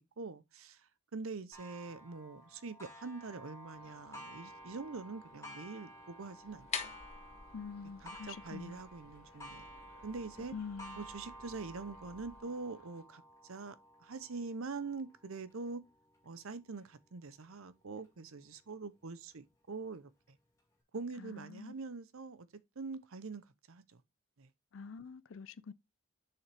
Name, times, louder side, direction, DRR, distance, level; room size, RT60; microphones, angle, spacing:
voice 1, 0.0-6.7 8.0-9.6 10.0-10.5 11.0-13.8 14.0-15.8 16.2-20.4 20.9-22.5 22.8-24.0 24.4-24.5, right 4 dB, 70° right, 0.7 m, -44 dB
Clock, 1.5-16.8 17.4-17.5 18.0-18.1 19.1-19.2, right 1 dB, 15° left, 2.1 m, -53 dB
sound 1, 3.7-13.0, left 3 dB, 85° left, 2.3 m, -65 dB
sound 2, 6.4-12.4, left 6 dB, 30° left, 0.8 m, -48 dB
voice 2, 7.5-8.8 10.5-11.0 21.2-21.7 24.7-25.7, left 5 dB, 60° left, 0.4 m, -45 dB
7.0 x 5.7 x 3.4 m
head